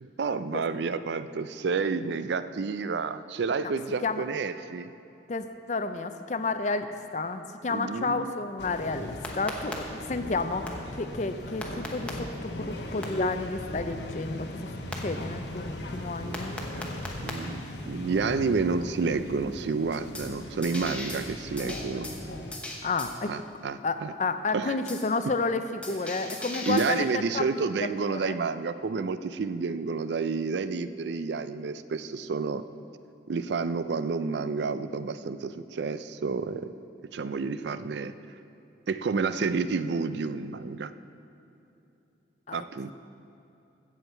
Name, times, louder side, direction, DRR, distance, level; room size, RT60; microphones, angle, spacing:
voice 1, 0.0-4.9 7.7-8.3 16.2-16.4 16.7-16.9 17.2-22.1 23.3-24.1 24.5-24.7 26.7-32.6 33.3-36.7 37.1-38.1 38.9-40.9 42.5-42.9, right 4 dB, 70° right, 13 dB, 0.4 m, -30 dB
voice 2, 5.3-6.9 7.1-16.5 22.8-23.3 23.8-27.7 28.1-28.4 42.5-42.9, left 3 dB, 40° left, 9 dB, 0.5 m, -31 dB
sound 1, 8.6-22.6, left 1 dB, 70° left, 1.0 m, -39 dB
sound 2, 9.2-9.7 10.7-10.8 11.6-12.1 13.0-13.1 14.9-15.0 16.3-17.3 20.1-20.3 20.6-21.2 21.6-22.2 22.5-23.1 24.9-25.0 25.8-26.9, left 1 dB, 5° left, 1.0 m, -37 dB
16.0 x 7.1 x 4.4 m, 2.9 s
head